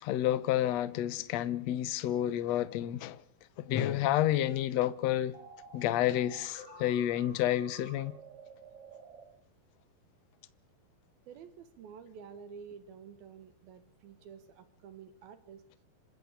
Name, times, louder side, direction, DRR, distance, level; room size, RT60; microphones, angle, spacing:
voice 1, 0.0-3.2 3.7-5.3 5.7-8.1, left 12 dB, 70° left, 1.7 m, -30 dB
sound 1, 5.3-9.2, right 5 dB, 40° right, 6.1 m, -52 dB
voice 2, 11.3-15.6, right 7 dB, 75° right, 3.4 m, -50 dB
26.5 x 15.0 x 8.4 m
omnidirectional pair, 4.4 m